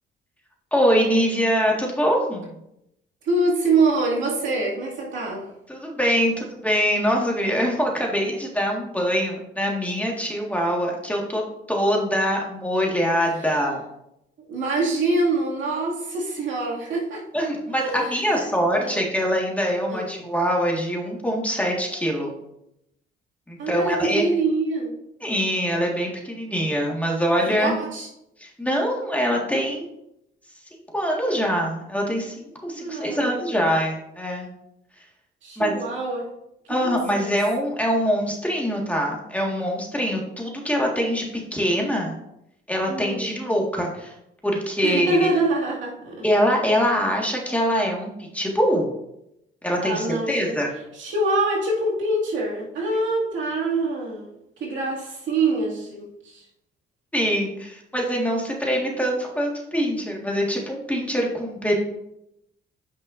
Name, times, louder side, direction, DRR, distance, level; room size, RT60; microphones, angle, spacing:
voice 1, 0.7-2.5 5.7-11.4 11.7-13.8 17.3-22.3 23.5-24.2 25.2-27.7 28.4-29.9 30.9-34.5 35.6-35.8 36.7-42.2 42.7-44.1 44.4-45.3 46.2-48.9 49.6-50.7 57.1-61.7, equal, 5° left, -1 dB, 1.8 m, -24 dB
voice 2, 3.2-5.5 13.3-13.6 14.5-17.3 17.7-19.0 19.9-20.1 23.6-25.0 27.5-28.1 32.7-33.4 35.4-36.3 36.8-37.4 42.9-43.3 44.8-46.2 49.8-50.6 50.9-54.3 54.6-56.5, right 2 dB, 70° right, -3 dB, 2.3 m, -25 dB
9.7 x 5.6 x 2.6 m, 0.81 s
cardioid pair, 90°, 20 cm